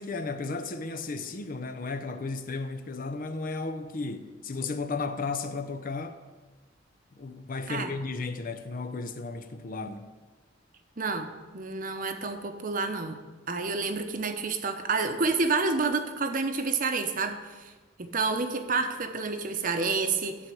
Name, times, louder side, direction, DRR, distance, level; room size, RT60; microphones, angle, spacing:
voice 1, 0.0-6.2 7.2-10.1, left 3 dB, 45° left, 0.6 m, -34 dB
voice 2, 11.0-13.2 13.5-17.7 18.0-20.4, right 4 dB, 45° right, 0.9 m, -29 dB
12.5 x 4.7 x 7.7 m
head